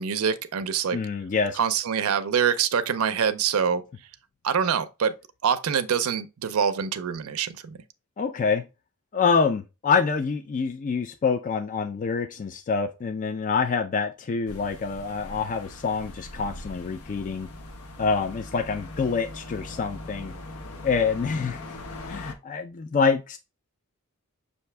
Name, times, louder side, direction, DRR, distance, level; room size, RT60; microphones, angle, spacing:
voice 1, 0.0-1.0 1.5-3.8 4.4-5.2 5.4-7.8, right 7 dB, 75° right, 0.4 m, -25 dB
voice 2, 0.9-1.6 8.2-8.6 9.1-17.5 18.0-20.3 20.8-21.6 22.1-23.4, left 5 dB, 35° left, 0.3 m, -26 dB
sound 1, 14.5-22.3, left 2 dB, 90° left, 0.8 m, -41 dB
5.7 x 2.6 x 3.2 m
head